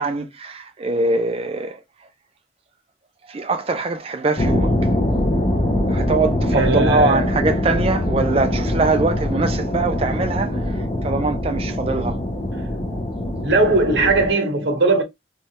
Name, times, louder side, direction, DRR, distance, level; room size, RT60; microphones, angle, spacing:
voice 1, 0.0-1.8 3.3-4.7 5.9-12.2, right 3 dB, 30° right, 0.4 m, -23 dB
sound 1, 4.4-14.3, left 1 dB, 30° left, 0.6 m, -22 dB
voice 2, 6.5-7.3 13.4-15.0, right 2 dB, 75° right, 0.9 m, -18 dB
3.1 x 2.3 x 2.8 m
head